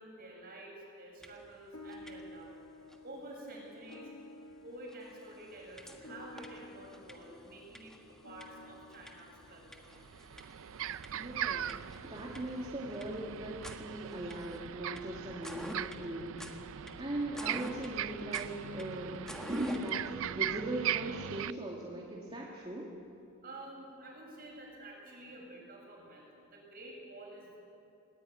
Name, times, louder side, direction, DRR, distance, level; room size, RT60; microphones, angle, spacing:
voice 1, 0.0-4.1 4.6-9.9 23.4-27.6, right 1 dB, 45° right, -1 dB, 7.2 m, -50 dB
sound 1, 1.2-1.6 1.8-2.5 2.9-3.0 3.9-4.0 4.5-4.6 4.9-20.0, equal, 5° left, 1.5 m, -50 dB
sound 2, 1.7-10.4, left 2 dB, 75° left, 1.4 m, -53 dB
sound 3, 9.4-9.5 9.9-21.5, right 10 dB, 65° right, 0.5 m, -39 dB
voice 2, 11.1-11.7 12.0-16.5 16.9-22.9, right 1 dB, 25° right, -3 dB, 2.3 m, -39 dB
19.5 x 19.0 x 9.4 m, 2.7 s
head